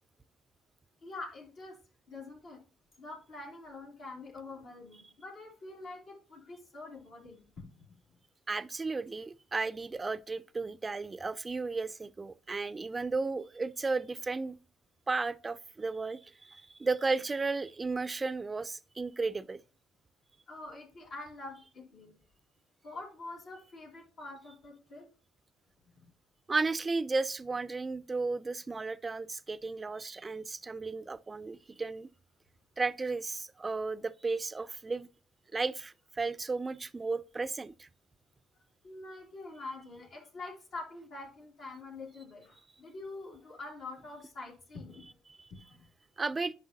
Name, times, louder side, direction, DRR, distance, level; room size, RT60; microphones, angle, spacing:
voice 1, 1.0-1.8 2.1-2.6 3.0-7.8 20.5-22.1 22.8-25.1 26.0-26.1 38.8-45.1 45.5-45.9, left 3 dB, 65° left, 2.7 m, -45 dB
voice 2, 8.5-14.6 15.1-19.6 26.5-32.1 32.8-35.1 35.5-37.9 45.3-45.5 46.2-46.5, right 3 dB, 30° right, 0.5 m, -34 dB
9.3 x 5.5 x 2.8 m
hypercardioid pair, 55°, 0 cm